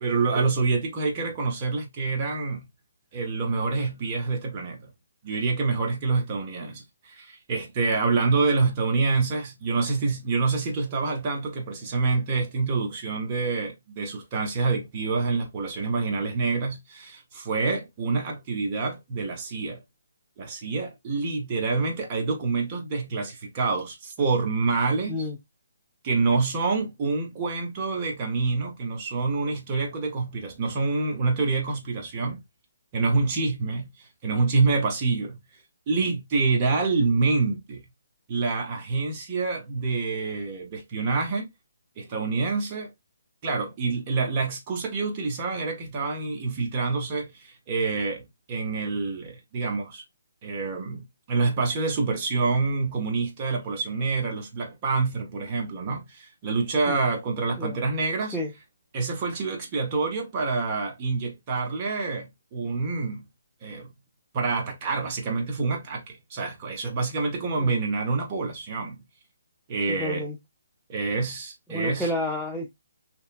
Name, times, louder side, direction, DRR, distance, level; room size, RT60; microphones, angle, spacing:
voice 1, 0.0-2.6 3.1-4.8 5.2-19.8 20.4-25.3 26.0-32.4 32.9-35.4 35.9-37.8 38.3-41.5 42.0-42.9 43.4-50.0 50.4-58.4 58.9-63.2 63.6-63.9 64.3-69.0 69.7-70.3 70.9-72.1, right 4 dB, 25° right, 0.7 m, -27 dB
voice 2, 69.9-70.4 71.7-72.7, left 1 dB, ahead, 0.4 m, -30 dB
2.8 x 2.2 x 2.4 m
hypercardioid pair, 165°, 0 cm